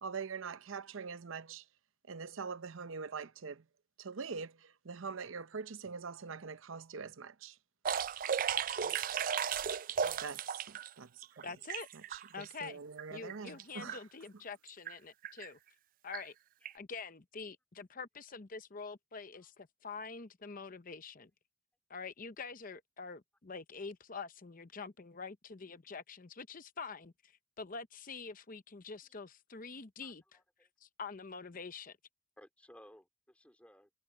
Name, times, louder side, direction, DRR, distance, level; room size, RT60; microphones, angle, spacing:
voice 1, 0.0-1.6 2.1-3.6 4.0-7.6 10.2-11.4 11.9-14.0, right 5 dB, 75° right, 0.7 m, -44 dB
sound 1, 7.9-10.9 11.2-12.5 13.0-13.1 13.3-13.6 13.9-14.0 14.7-14.9 15.2-15.5 16.1-16.2 16.7-16.8, right 7 dB, 45° right, 0.3 m, -35 dB
voice 2, 11.4-11.9 12.3-12.8 13.1-15.6 16.0-16.3 16.7-21.3 21.9-30.4 30.8-32.0, left 4 dB, 40° left, 0.8 m, -46 dB
voice 3, 30.0-30.7 32.4-33.9, equal, 5° left, 3.3 m, -60 dB
head